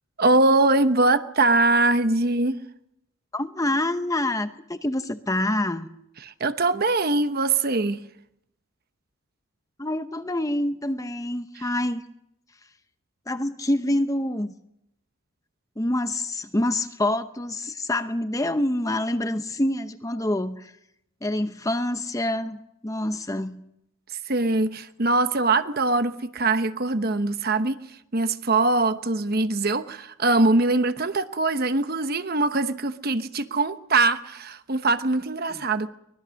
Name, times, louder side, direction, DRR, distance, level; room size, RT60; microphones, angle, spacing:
voice 1, 0.2-2.6 6.2-8.0 24.3-27.8 28.1-35.9, right 2 dB, 45° right, 10 dB, 1.0 m, -22 dB
voice 2, 3.3-5.9 9.8-12.0 13.3-14.5 15.8-20.7 21.2-23.6 35.5-35.6, left 1 dB, 15° left, 10 dB, 0.8 m, -26 dB
24.5 x 20.0 x 6.4 m, 0.78 s
head